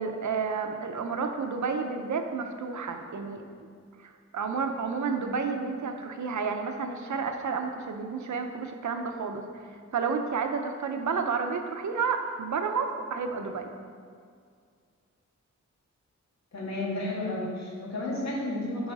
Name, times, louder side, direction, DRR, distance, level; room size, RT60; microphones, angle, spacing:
voice 1, 0.0-3.4 4.0-13.7, right 5 dB, 80° right, 5 dB, 0.8 m, -31 dB
voice 2, 16.5-18.9, left 1 dB, 65° left, -4 dB, 2.0 m, -32 dB
9.4 x 4.9 x 4.8 m, 2.1 s
wide cardioid pair, 140°, 29 cm